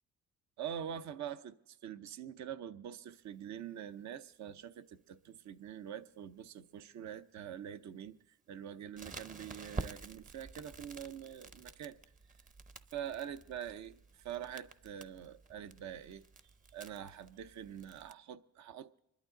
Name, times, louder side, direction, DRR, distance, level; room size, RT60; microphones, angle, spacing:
voice 1, 0.6-8.1 8.5-12.0 12.9-14.0 14.2-16.2 16.7-19.0, right 9 dB, 65° right, 0.8 m, -45 dB
Crackle, 9.0-18.1, right 3 dB, 25° right, 0.7 m, -49 dB
25.5 x 12.0 x 3.8 m
cardioid pair, 90°, 30 cm